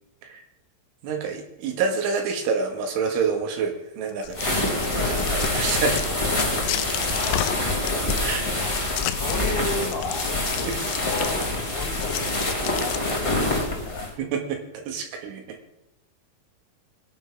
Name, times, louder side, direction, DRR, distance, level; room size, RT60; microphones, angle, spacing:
voice 1, 1.0-6.0 8.2-8.4 10.7-10.8 14.2-15.6, right 5 dB, 80° right, 4 dB, 4.3 m, -28 dB
sound 1, 4.1-13.5, left 13 dB, 85° left, 2.4 m, -33 dB
sound 2, 4.3-14.1, left 2 dB, 15° left, 0.9 m, -26 dB
voice 2, 7.1-7.5 8.1-10.3 10.5-14.1, left 4 dB, 60° left, 3 dB, 3.2 m, -35 dB
23.0 x 10.5 x 3.7 m, 0.90 s
omnidirectional pair, 5.6 m